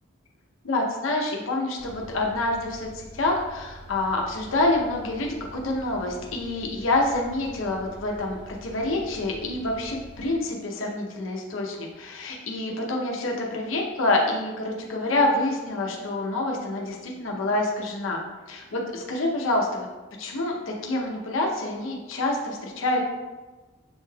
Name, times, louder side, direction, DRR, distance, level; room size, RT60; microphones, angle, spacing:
voice 1, 0.6-18.2 18.5-19.9 20.2-23.0, left 2 dB, 80° left, -1 dB, 0.7 m, -27 dB
sound 1, 1.8-10.3, right 1 dB, 80° right, 1.4 m, -45 dB
7.0 x 3.3 x 2.2 m, 1.2 s
head